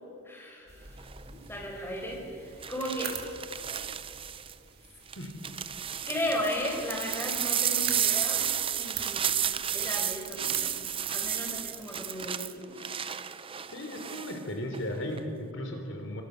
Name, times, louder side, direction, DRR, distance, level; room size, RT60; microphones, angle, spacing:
voice 1, 0.2-3.2 6.1-9.4 9.7-10.7 11.1-12.8, left 1 dB, 10° left, 0 dB, 5.0 m, -36 dB
sound 1, 0.7-12.1, right 8 dB, 45° right, 3.2 m, -46 dB
sound 2, 1.0-1.3 2.6-4.5 5.1-14.4 14.7-15.2, right 9 dB, 25° right, 0.6 m, -32 dB
voice 2, 13.7-16.2, left 1 dB, 60° left, 3 dB, 3.7 m, -36 dB
28.0 x 25.5 x 6.5 m, 2.5 s
head